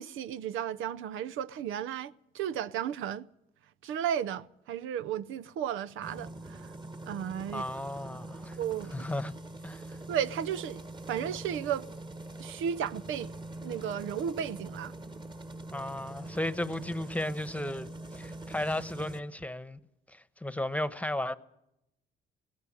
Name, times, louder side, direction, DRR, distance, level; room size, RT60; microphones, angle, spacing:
voice 1, 0.0-3.3 3.8-6.7 7.0-7.7 8.5-9.1 10.1-11.9 12.4-13.4 13.6-14.9, right 9 dB, 90° right, 0.7 m, -34 dB
sound 1, 6.0-19.2, right 2 dB, 25° right, 1.5 m, -43 dB
voice 2, 7.5-8.6 8.9-9.3 9.6-10.0 15.7-19.8 20.1-21.3, left 1 dB, 5° left, 1.1 m, -34 dB
18.0 x 16.5 x 9.8 m
cardioid pair, 90°, 20 cm